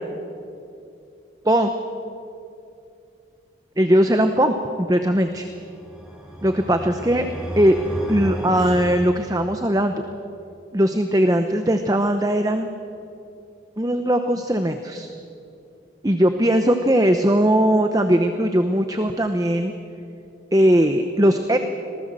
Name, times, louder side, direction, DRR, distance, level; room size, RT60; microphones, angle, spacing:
voice 1, 3.8-5.5 6.4-7.3 7.6-7.8 8.1-9.9 10.7-12.7 13.8-15.1 16.0-19.7 20.5-21.6, right 1 dB, 20° right, 7 dB, 0.9 m, -19 dB
sound 1, 5.4-9.7, equal, 5° right, 5.1 m, -33 dB
26.0 x 19.0 x 7.6 m, 2.6 s
head